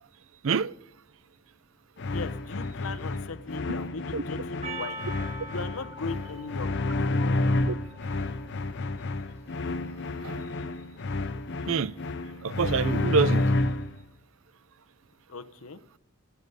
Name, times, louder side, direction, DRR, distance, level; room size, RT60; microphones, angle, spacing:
sound 1, 2.0-14.0, left 2 dB, 55° left, 0.7 m, -30 dB
voice 1, 2.1-5.0 5.4-6.9 15.3-15.8, left 3 dB, 80° left, 1.0 m, -38 dB
Percussion, 4.6-8.9, right 1 dB, 30° right, 1.3 m, -43 dB
voice 2, 12.4-13.5, right 5 dB, 65° right, 0.5 m, -26 dB
16.0 x 7.1 x 8.1 m
head